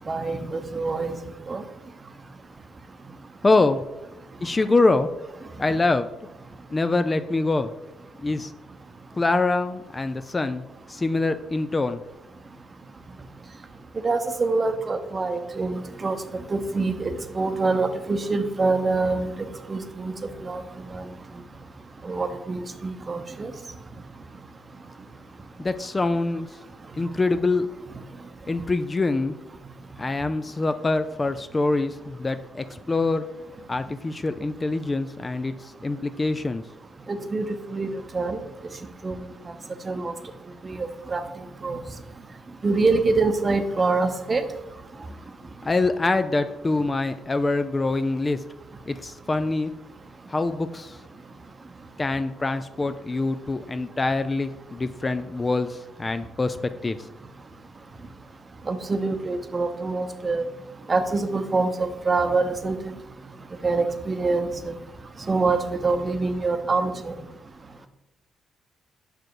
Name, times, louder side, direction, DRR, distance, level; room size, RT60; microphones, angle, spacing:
voice 1, 0.1-1.1 1.5-1.6 14.0-16.2 16.5-19.3 19.7-20.1 20.4-20.6 20.9-21.0 22.0-23.5 37.1-37.9 38.1-38.4 39.0-39.2 39.8-40.1 40.6-41.2 41.6-41.8 42.6-44.4 58.7-60.4 60.9-62.9 63.6-64.7 65.3-67.2, right 3 dB, 30° right, 8 dB, 0.8 m, -25 dB
voice 2, 3.4-3.8 4.4-5.1 5.6-6.1 6.7-7.7 8.2-8.5 9.2-12.0 25.6-26.5 26.9-27.7 28.5-29.4 30.0-33.3 33.7-36.6 45.6-48.4 48.9-49.7 50.3-51.0 52.0-57.0, left 3 dB, 25° left, 10 dB, 0.4 m, -24 dB
5.9 x 5.0 x 4.7 m, 0.99 s
cardioid pair, 90°, 0 cm